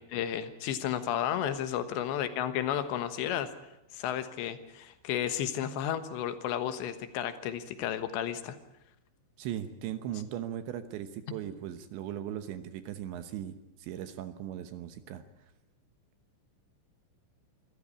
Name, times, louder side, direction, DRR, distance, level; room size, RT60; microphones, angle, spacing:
voice 1, 0.1-3.5 3.9-8.6, left 10 dB, 70° left, 10 dB, 3.2 m, -32 dB
voice 2, 9.4-15.2, right 11 dB, 75° right, 10 dB, 3.1 m, -38 dB
26.0 x 14.5 x 9.8 m, 0.91 s
omnidirectional pair, 5.9 m